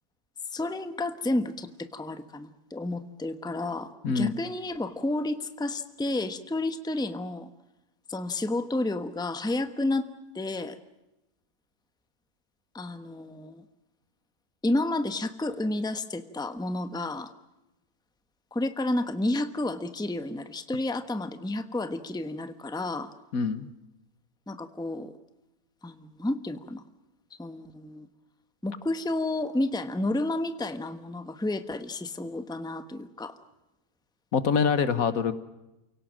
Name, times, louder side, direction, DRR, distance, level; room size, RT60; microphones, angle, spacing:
voice 1, 0.5-7.5 8.1-10.8 12.7-13.6 14.6-17.3 18.5-23.1 24.5-25.1 25.8-26.8 27.4-28.1 28.6-33.4, left 2 dB, 5° left, 10 dB, 1.0 m, -31 dB
voice 2, 23.3-23.7 34.3-35.3, left 6 dB, 70° left, 13 dB, 1.6 m, -25 dB
28.5 x 18.0 x 7.5 m, 0.96 s
omnidirectional pair, 1.5 m